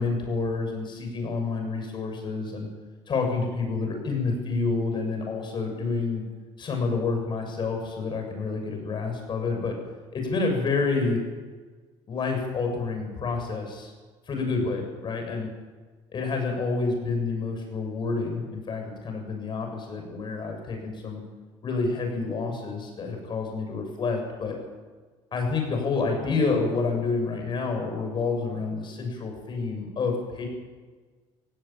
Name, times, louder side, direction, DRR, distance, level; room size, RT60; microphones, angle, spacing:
voice 1, 0.0-2.7 3.1-6.2 6.6-9.7 10.1-11.2 12.1-13.9 14.3-15.5 16.1-21.2 21.6-24.5 25.3-30.5, left 4 dB, 40° left, 3 dB, 7.3 m, -28 dB
17.5 x 16.5 x 9.1 m, 1.4 s
cardioid pair, 110°, 12 cm